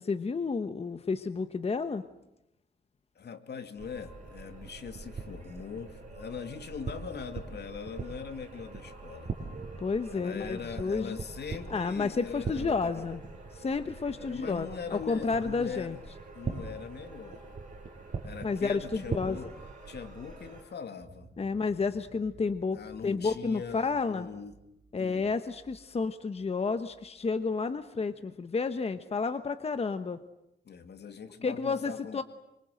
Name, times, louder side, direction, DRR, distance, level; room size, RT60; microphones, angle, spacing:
voice 1, 0.0-2.0 9.8-11.2 11.7-13.2 13.5-16.0 18.4-19.4 21.4-24.3 24.9-30.2 31.4-32.2, left 4 dB, 35° left, 9 dB, 1.1 m, -31 dB
voice 2, 3.2-9.3 10.1-13.0 14.1-16.0 16.3-17.4 18.2-19.5 19.9-21.3 22.7-24.6 25.0-25.3 30.6-32.2, left 6 dB, 65° left, 7 dB, 2.5 m, -41 dB
sound 1, 3.8-20.6, right 4 dB, 45° right, 6.3 m, -42 dB
sound 2, 21.0-28.1, right 2 dB, 25° right, 6.0 m, -58 dB
27.5 x 25.5 x 7.9 m, 0.87 s
wide cardioid pair, 130°, 18 cm